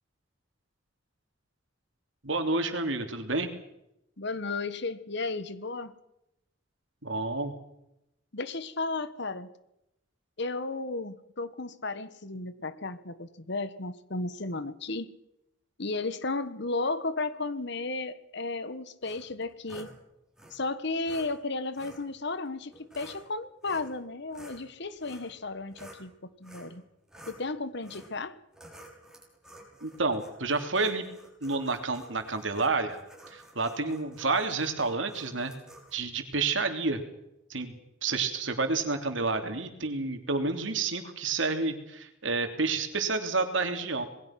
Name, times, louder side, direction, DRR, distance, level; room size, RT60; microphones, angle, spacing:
voice 1, 2.2-3.5 7.0-7.5 29.8-31.1 31.4-33.0 33.3-35.5 35.9-37.0 37.5-44.1, right 3 dB, 70° right, 6 dB, 3.1 m, -29 dB
voice 2, 4.2-5.9 8.3-9.5 10.4-15.1 15.8-19.9 20.5-26.1 26.4-26.8 27.3-28.3, left 3 dB, 60° left, 14 dB, 1.4 m, -34 dB
sound 1, 19.0-19.9 20.3-20.6 21.0-21.3 21.7-22.0 22.7-23.2 23.6-24.0 24.3-26.0 26.4-26.7 27.1-27.4 27.8-28.1 28.5-35.9, right 1 dB, 5° right, 6.7 m, -51 dB
27.0 x 21.0 x 6.0 m, 0.85 s
head